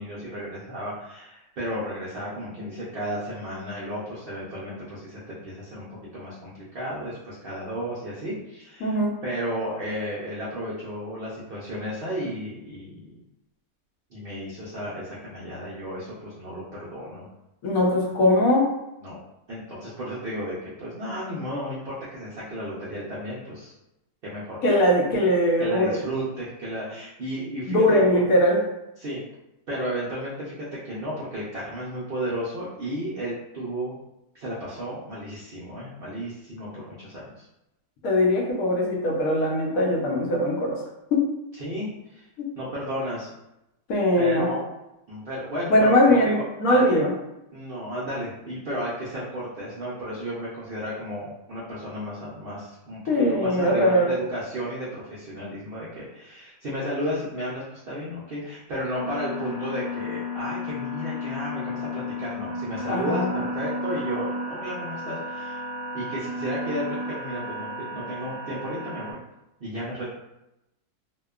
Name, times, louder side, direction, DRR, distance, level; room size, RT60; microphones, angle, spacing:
voice 1, 0.0-5.9 6.1-13.0 14.1-17.3 19.0-19.2 19.5-23.7 24.2-24.6 25.6-28.0 29.0-29.2 29.7-33.9 34.3-37.5 41.6-42.3 42.6-43.3 44.2-44.6 45.1-47.1 47.5-53.0 53.3-65.6 65.9-69.2 69.6-70.1, equal, 65° right, -8 dB, 0.5 m, -33 dB
voice 2, 8.8-9.1 17.6-18.7 24.6-26.0 27.7-28.6 38.0-40.8 41.1-41.2 43.9-44.6 45.7-47.1 53.1-54.1 62.9-63.4, left 1 dB, 70° left, -2 dB, 1.0 m, -21 dB
sound 1, 58.9-69.1, left 2 dB, 85° left, 1.4 m, -33 dB
2.8 x 2.2 x 2.3 m, 0.89 s
omnidirectional pair, 1.6 m